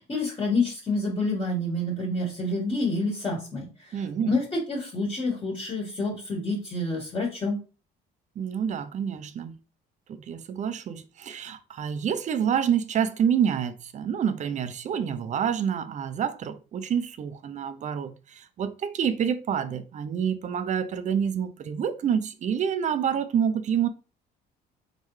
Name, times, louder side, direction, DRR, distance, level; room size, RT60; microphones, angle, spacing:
voice 1, 0.0-7.6, left 2 dB, 30° left, 1.7 m, -28 dB
voice 2, 3.9-4.4 8.4-9.6 10.1-23.9, right 8 dB, 45° right, 0.6 m, -28 dB
4.0 x 3.7 x 3.2 m
cardioid pair, 110°, 17 cm